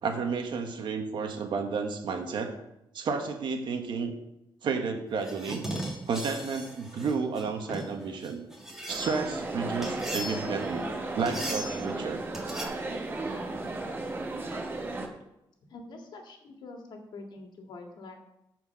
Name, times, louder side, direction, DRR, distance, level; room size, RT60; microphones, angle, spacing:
voice 1, 0.0-2.5 2.9-4.1 4.6-5.7 6.1-8.4 8.9-10.9 11.1-12.2, right 5 dB, 65° right, 5 dB, 1.4 m, -31 dB
sound 1, 5.2-9.3 9.8-10.7 11.2-11.8 12.3-12.6, equal, 5° right, 1.9 m, -38 dB
sound 2, 8.9-15.1, right 2 dB, 25° right, 1.3 m, -34 dB
voice 2, 15.7-18.2, left 3 dB, 60° left, 3 dB, 1.8 m, -45 dB
13.5 x 4.6 x 5.7 m, 0.87 s
wide cardioid pair, 160°, 9 cm